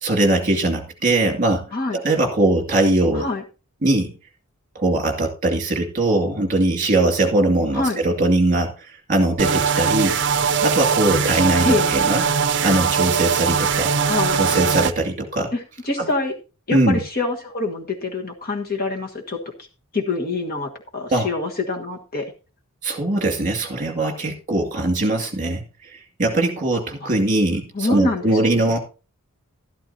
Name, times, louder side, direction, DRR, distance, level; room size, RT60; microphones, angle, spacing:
voice 1, 0.0-3.3 3.8-4.1 4.7-10.2 10.6-12.3 12.6-13.9 14.3-15.5 16.0-16.1 16.7-17.0 21.1-21.3 22.8-28.8, right 2 dB, 35° right, 2 dB, 2.3 m, -21 dB
sound 1, 9.4-14.9, right 6 dB, 55° right, 0.6 m, -20 dB
voice 2, 14.1-14.6 15.5-15.6 15.8-16.3 16.7-19.4 19.9-22.3 27.0-27.1 27.7-28.8, left 3 dB, 45° left, 1 dB, 1.5 m, -25 dB
12.5 x 12.0 x 2.8 m, 0.33 s
head